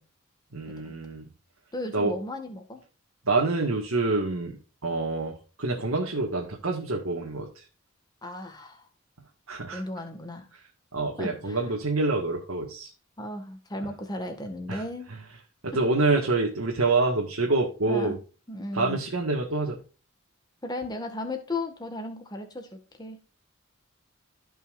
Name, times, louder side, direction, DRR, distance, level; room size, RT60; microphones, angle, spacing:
voice 1, 0.5-1.3 1.9-2.1 3.3-4.6 4.8-7.6 9.5-9.8 10.9-12.9 14.7-14.8 15.6-18.2 18.7-19.8, right 3 dB, 85° right, 0 dB, 1.7 m, -26 dB
voice 2, 1.7-2.8 8.2-8.8 9.7-10.5 11.2-11.6 13.2-15.1 15.7-15.8 16.1-16.2 17.9-18.2 18.5-19.0 20.6-23.2, left 1 dB, 20° left, 5 dB, 1.7 m, -35 dB
15.0 x 5.6 x 2.5 m, 0.34 s
head